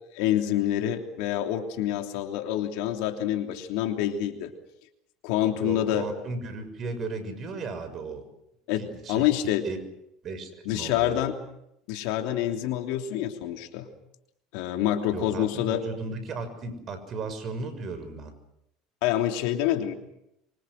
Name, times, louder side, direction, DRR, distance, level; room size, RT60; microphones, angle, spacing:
voice 1, 0.1-4.5 5.2-6.1 8.7-8.8 9.1-9.6 10.6-11.3 11.9-13.9 14.5-15.8 19.0-19.9, left 12 dB, 70° left, 4 dB, 3.1 m, -27 dB
voice 2, 5.5-8.3 8.7-9.3 9.6-9.8 10.2-11.2 15.1-18.4, right 3 dB, 45° right, 11 dB, 6.4 m, -36 dB
25.5 x 25.5 x 6.5 m, 0.81 s
hypercardioid pair, 80°, 0 cm